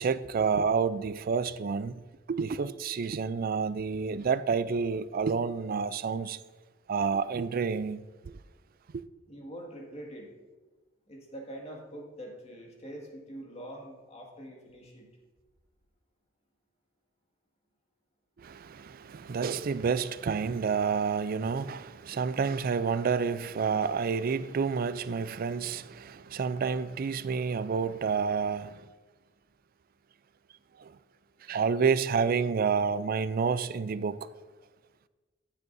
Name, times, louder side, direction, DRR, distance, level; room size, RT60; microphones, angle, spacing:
voice 1, 0.0-2.0 2.3-6.4 6.9-8.3 8.9-9.0 18.4-28.8 30.8-30.9 31.5-34.2, right 5 dB, 50° right, 0.4 m, -29 dB
voice 2, 9.3-10.3 11.1-15.1, right 1 dB, 35° left, 2.0 m, -44 dB
15.0 x 8.1 x 2.7 m
head